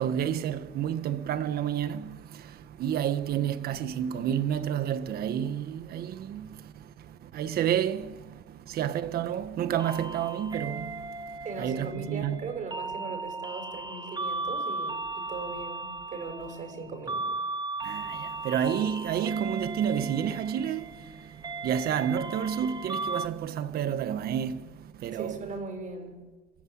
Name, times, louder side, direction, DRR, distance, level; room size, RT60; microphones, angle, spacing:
voice 1, 0.0-12.4 17.8-25.5, right 9 dB, 65° right, 1.5 m, -30 dB
sound 1, 9.8-23.3, right 3 dB, 25° right, 1.3 m, -37 dB
voice 2, 11.4-17.3 25.1-26.2, right 3 dB, 50° right, 6.9 m, -39 dB
29.5 x 15.0 x 8.7 m
cardioid pair, 110°, 17 cm